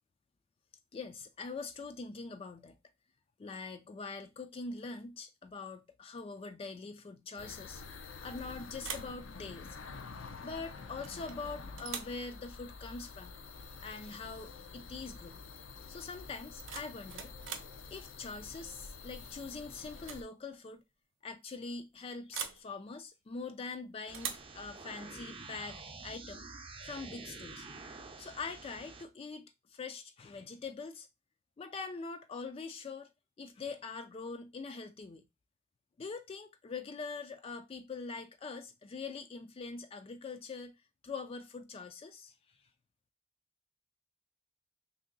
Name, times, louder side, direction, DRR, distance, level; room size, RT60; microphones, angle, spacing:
voice 1, 0.9-2.8 3.4-7.8 8.2-9.8 10.4-13.3 13.8-15.4 15.9-17.3 17.9-20.8 21.2-26.5 26.8-27.7 28.2-31.1 31.6-33.1 33.4-35.3 36.0-40.8 41.0-42.3, left 4 dB, 30° left, 0.3 m, -43 dB
sound 1, 7.4-20.2, left 4 dB, 85° left, 0.5 m, -48 dB
sound 2, 8.1-8.4 8.8-9.2 11.0-11.4 11.8-12.2 14.0-14.2 14.6-14.9 16.4-17.8 19.2-19.5 19.9-20.3 20.5-20.6 22.3-22.7 24.1-24.5, right 8 dB, 75° right, 0.6 m, -43 dB
sound 3, 24.1-29.0, right 3 dB, 25° right, 0.6 m, -48 dB
3.0 x 2.7 x 3.7 m
head